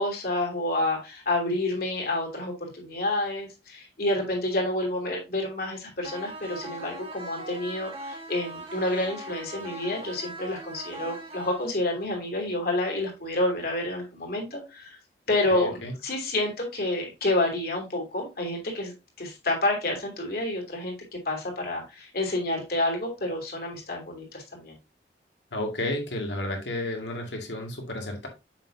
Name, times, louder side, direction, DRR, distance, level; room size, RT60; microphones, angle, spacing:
voice 1, 0.0-15.0 15.3-18.9 19.2-20.9 21.2-24.7, left 2 dB, 55° left, 0 dB, 2.8 m, -29 dB
sound 1, 6.0-12.0, right 1 dB, 30° right, 1.5 m, -40 dB
voice 2, 15.5-15.9 25.5-28.3, left 1 dB, 75° left, 2 dB, 2.0 m, -32 dB
7.2 x 5.8 x 2.7 m, 0.25 s
head